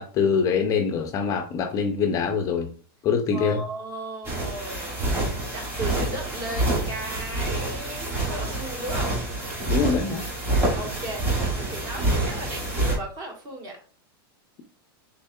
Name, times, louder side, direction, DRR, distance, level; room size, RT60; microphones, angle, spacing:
voice 1, 0.0-2.7 3.0-3.6 9.7-10.3, left 6 dB, 25° left, 5 dB, 0.4 m, -24 dB
voice 2, 3.3-9.1 10.7-11.3 11.5-13.8, right 2 dB, 35° right, 2 dB, 1.3 m, -36 dB
sound 1, 4.2-13.0, right 2 dB, 20° right, 1.8 m, -27 dB
4.5 x 3.5 x 2.2 m, 0.41 s
supercardioid pair, 150°, 13 cm